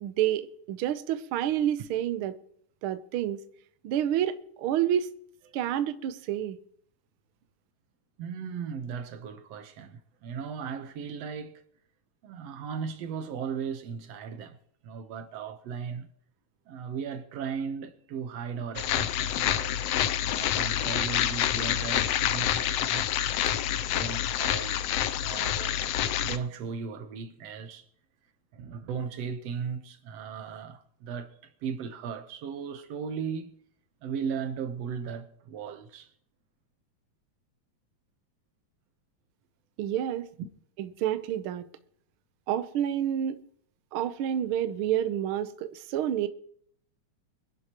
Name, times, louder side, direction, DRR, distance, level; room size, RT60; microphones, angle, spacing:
voice 1, 0.0-2.4 2.8-3.4 3.8-5.1 5.5-6.6 39.8-40.3 40.8-41.7 42.5-43.4 43.9-46.3, right 11 dB, 80° right, 1.2 m, -29 dB
voice 2, 8.2-11.5 12.2-14.6 14.8-16.1 16.7-23.1 23.9-24.8 25.2-25.9 26.2-27.9 28.5-33.6 34.0-36.1, right 6 dB, 65° right, 2.0 m, -37 dB
sound 1, 18.8-26.4, left 11 dB, 75° left, 1.5 m, -27 dB
24.0 x 11.0 x 3.0 m
omnidirectional pair, 3.3 m